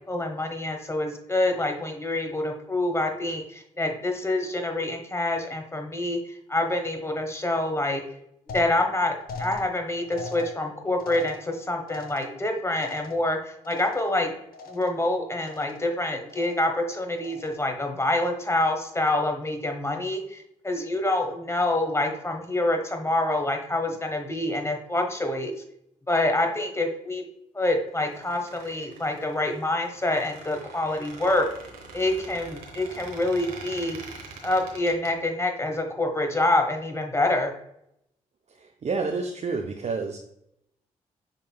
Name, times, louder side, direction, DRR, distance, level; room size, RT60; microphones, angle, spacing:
voice 1, 0.1-8.0 8.5-14.3 14.7-25.5 26.1-27.2 27.5-31.5 31.9-34.0 34.4-37.5, left 2 dB, 15° left, 4 dB, 1.3 m, -26 dB
sound 1, 8.5-14.3 14.5-15.1 15.4-16.0 16.3-16.8 17.2-17.7, left 3 dB, 70° left, 0.7 m, -42 dB
Squeak, 27.9-35.1, right 3 dB, 85° right, 1.0 m, -44 dB
voice 2, 38.5-40.2, right 4 dB, 45° right, 3 dB, 0.6 m, -29 dB
6.5 x 3.6 x 2.3 m, 0.77 s
hypercardioid pair, 40°, 16 cm